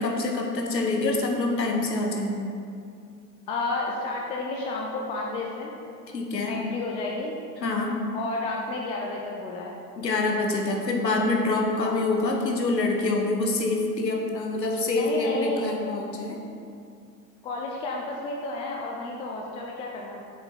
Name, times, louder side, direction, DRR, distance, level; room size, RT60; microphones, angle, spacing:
voice 1, 0.0-2.4 6.1-6.6 7.6-8.0 10.0-16.4, left 2 dB, 85° left, 1 dB, 1.4 m, -26 dB
voice 2, 3.5-5.7 6.5-7.3 8.1-9.8 11.8-12.0 14.9-15.7 17.4-20.2, left 2 dB, 15° left, -1 dB, 0.3 m, -31 dB
8.3 x 7.0 x 4.4 m, 2.4 s
figure-of-eight pair, 90°, 49 cm